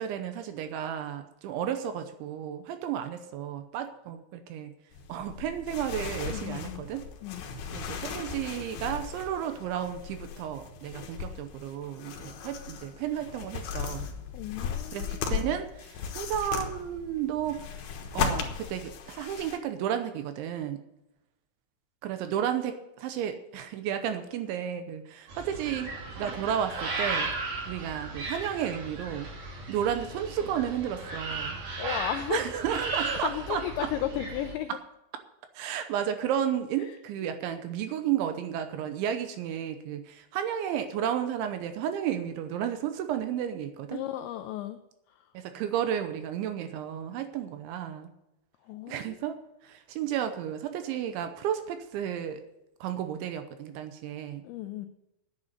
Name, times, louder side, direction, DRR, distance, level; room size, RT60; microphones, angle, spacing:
voice 1, 0.0-4.7 5.1-7.0 7.7-14.1 14.9-17.7 18.1-20.8 22.0-25.9 26.2-27.3 27.7-29.3 29.7-31.6 32.3-33.9 34.7-34.8 35.5-44.0 45.3-48.1 48.9-52.4 52.8-54.4, right 9 dB, 80° right, 8 dB, 3.0 m, -32 dB
sound 1, 4.9-19.6, left 7 dB, 65° left, 2.8 m, -37 dB
voice 2, 6.3-6.9 7.2-7.4 14.3-15.6 31.8-32.5 33.1-34.8 36.8-37.3 43.9-44.8 45.1-45.2 48.6-49.2 54.4-54.9, left 12 dB, 85° left, 9 dB, 2.6 m, -35 dB
sound 2, 25.3-34.5, right 3 dB, 50° right, 4.6 m, -36 dB
9.8 x 9.1 x 8.1 m, 0.89 s
omnidirectional pair, 5.9 m